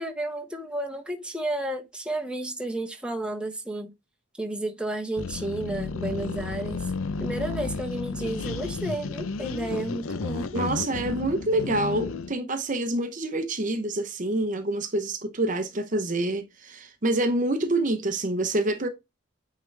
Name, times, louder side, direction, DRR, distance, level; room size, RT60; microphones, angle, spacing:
voice 1, 0.0-3.9 4.4-6.8 7.2-10.5, right 1 dB, 5° right, 1.0 m, -32 dB
sound 1, 5.2-12.4, left 4 dB, 75° left, 0.6 m, -32 dB
voice 2, 10.5-18.9, right 1 dB, 35° right, 0.8 m, -27 dB
9.0 x 3.7 x 3.3 m
head